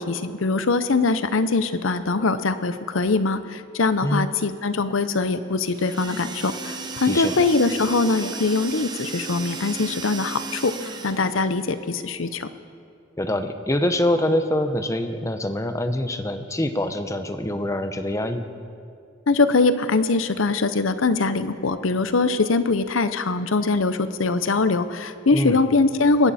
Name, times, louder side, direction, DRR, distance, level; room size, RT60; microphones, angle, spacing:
voice 1, 0.0-10.7 11.0-12.5 19.3-26.3, left 3 dB, 85° left, 12 dB, 0.8 m, -22 dB
sound 1, 5.6-11.5, right 4 dB, 20° right, 0.9 m, -35 dB
voice 2, 13.2-18.5 25.3-25.6, left 1 dB, 15° left, 8 dB, 0.8 m, -24 dB
20.0 x 16.0 x 4.3 m, 2.4 s
head